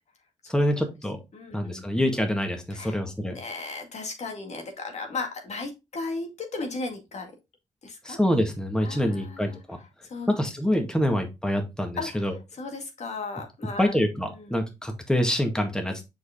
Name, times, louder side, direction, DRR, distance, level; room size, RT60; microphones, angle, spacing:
voice 1, 0.5-1.2 1.5-3.4 8.1-9.8 10.3-12.3 13.8-16.0, equal, 5° left, 4 dB, 1.9 m, -26 dB
voice 2, 1.3-2.0 2.7-7.3 7.8-8.2 8.8-10.3 11.9-14.0 14.3-14.6, left 3 dB, 55° left, 3 dB, 2.1 m, -36 dB
6.1 x 5.0 x 3.7 m, 0.24 s
supercardioid pair, 50°, 14 cm